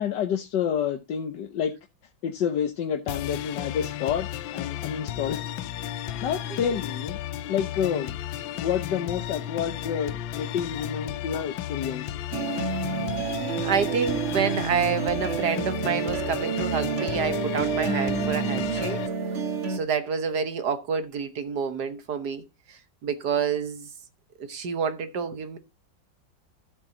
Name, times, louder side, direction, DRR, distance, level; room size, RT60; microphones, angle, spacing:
voice 1, 0.0-1.7 2.2-5.5 6.2-7.2 7.5-8.2 8.6-12.1, left 8 dB, 70° left, 1.5 m, -29 dB
sound 1, 3.1-19.1, left 12 dB, 90° left, 1.4 m, -34 dB
sound 2, 12.3-19.8, right 5 dB, 40° right, 1.6 m, -29 dB
voice 2, 13.6-19.0 19.7-23.9 24.4-25.6, right 6 dB, 60° right, 1.6 m, -28 dB
14.0 x 7.4 x 2.8 m
omnidirectional pair, 2.0 m